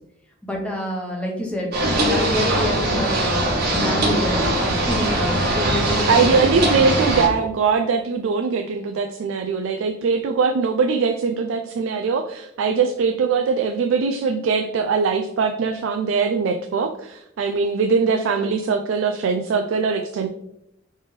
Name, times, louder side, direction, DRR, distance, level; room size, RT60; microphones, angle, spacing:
voice 1, 0.4-1.7 2.0-7.2, left 1 dB, 5° left, -1 dB, 0.9 m, -28 dB
sound 1, 1.7-7.3, right 1 dB, 55° right, 1.1 m, -21 dB
voice 2, 6.1-20.3, right 5 dB, 75° right, 5 dB, 0.3 m, -21 dB
4.3 x 3.3 x 3.2 m, 0.82 s
head